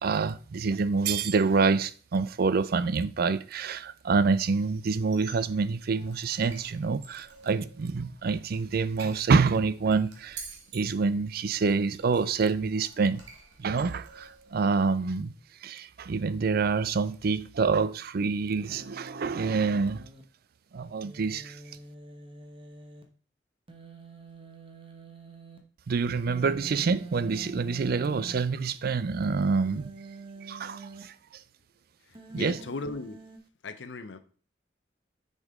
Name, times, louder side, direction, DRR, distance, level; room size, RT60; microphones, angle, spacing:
voice 1, 0.0-10.4 10.7-13.2 13.6-15.3 15.6-20.0 20.7-21.6 25.9-29.9 30.4-31.1 32.3-32.6, right 4 dB, 55° right, 0.4 m, -27 dB
Squeak, 5.0-14.6, right 4 dB, 85° right, 1.8 m, -50 dB
Human voice, 18.7-20.2 21.0-23.0 23.7-25.6 26.3-28.4 29.4-31.0 32.2-33.4, right 2 dB, 30° right, 1.1 m, -46 dB
voice 2, 32.0-33.2 33.6-34.2, left 3 dB, 90° left, 0.7 m, -38 dB
6.5 x 5.2 x 3.6 m
head